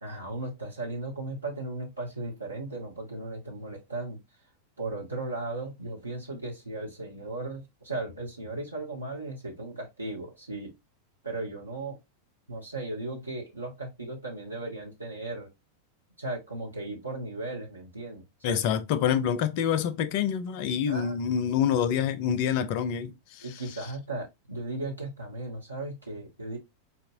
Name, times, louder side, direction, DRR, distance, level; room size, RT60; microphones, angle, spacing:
voice 1, 0.0-4.2 4.8-10.7 11.2-12.0 12.5-15.5 16.2-18.6 20.9-21.2 23.4-26.6, right 2 dB, 80° right, 1.4 m, -36 dB
voice 2, 18.4-23.4, left 8 dB, 45° left, 0.5 m, -27 dB
4.3 x 2.8 x 2.7 m
figure-of-eight pair, 90°, 0 cm